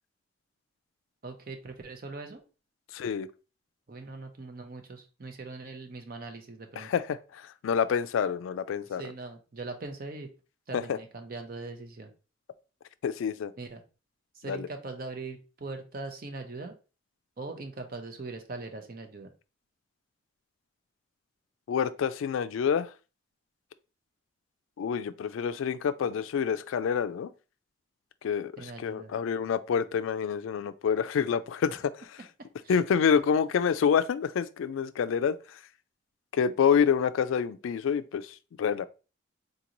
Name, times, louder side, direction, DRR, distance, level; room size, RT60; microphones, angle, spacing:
voice 1, 1.2-2.4 3.9-6.9 9.0-10.3 10.7-12.1 13.6-13.8 14.3-16.7 17.4-19.3 28.6-29.1 32.6-32.8, right 3 dB, 45° right, 0.6 m, -41 dB
voice 2, 2.9-3.3 6.8-9.0 10.7-11.0 13.0-13.5 14.5-14.7 21.7-22.9 24.8-27.3 28.2-31.9 32.7-35.6 36.3-38.9, left 7 dB, 85° left, 0.3 m, -27 dB
3.8 x 2.9 x 2.5 m
head